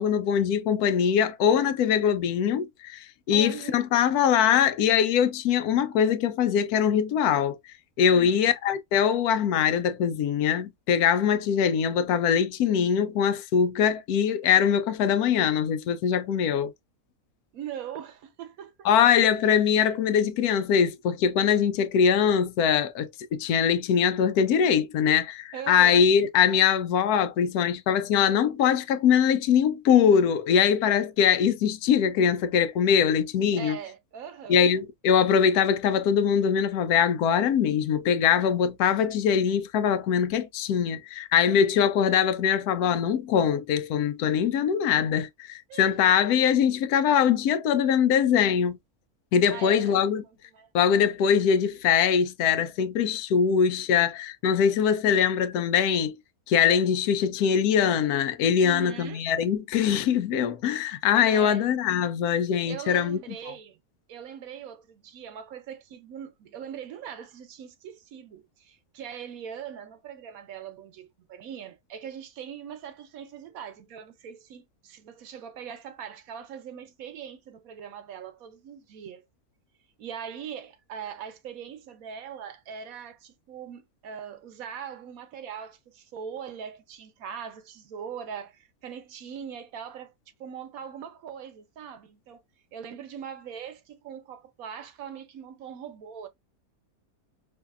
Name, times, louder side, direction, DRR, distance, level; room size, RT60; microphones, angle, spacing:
voice 1, 0.0-7.6 8.0-16.7 18.8-33.8 34.5-48.8 49.3-50.2 50.7-56.1 56.5-63.2, left 8 dB, 80° left, 1.1 m, -22 dB
voice 2, 3.3-3.8 8.1-8.4 17.5-19.1 25.5-26.1 33.5-34.6 45.7-46.3 49.5-50.7 58.6-59.2 61.3-61.6 62.7-63.8 64.1-79.3 80.0-90.1 90.4-92.4 92.7-96.3, right 8 dB, 70° right, 1.1 m, -41 dB
4.8 x 2.6 x 2.3 m
omnidirectional pair, 1.6 m